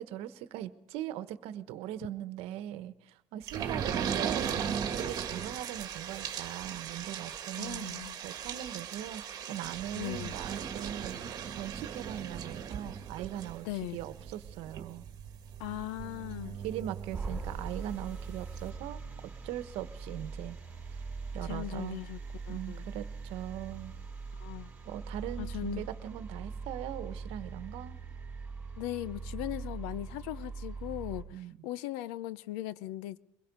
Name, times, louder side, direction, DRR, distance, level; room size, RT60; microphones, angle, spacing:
voice 1, 0.0-13.7 13.9-15.0 16.6-19.0 19.4-20.6 21.0-21.1 21.3-22.0 22.5-23.9 24.8-28.0 31.3-31.6, right 12 dB, 60° right, 1.2 m, -40 dB
sound 1, 3.5-17.8 18.2-18.3 18.6-18.7, right 8 dB, 35° right, 1.8 m, -38 dB
voice 2, 7.6-8.2 9.9-10.4 13.6-14.0 15.6-16.6 21.4-22.2 22.5-22.8 24.4-24.7 25.4-25.9 28.8-33.2, left 15 dB, 80° left, 0.7 m, -39 dB
sound 2, 17.1-31.2, right 4 dB, 10° right, 4.3 m, -41 dB
23.0 x 21.5 x 5.4 m
cardioid pair, 155°, 11 cm